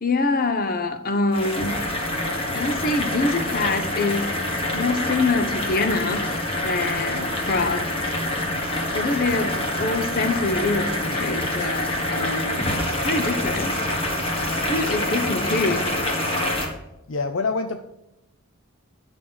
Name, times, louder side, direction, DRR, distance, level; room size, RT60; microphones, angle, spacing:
voice 1, 0.0-1.7 2.5-4.3 4.7-7.9 8.9-12.8 13.0-13.8 14.7-15.9, left 3 dB, 40° left, 8 dB, 0.9 m, -25 dB
sound 1, 1.3-16.7, left 1 dB, 25° left, 1.7 m, -26 dB
voice 2, 17.1-17.8, left 4 dB, 60° left, 7 dB, 0.6 m, -25 dB
11.0 x 6.3 x 5.6 m, 0.92 s
head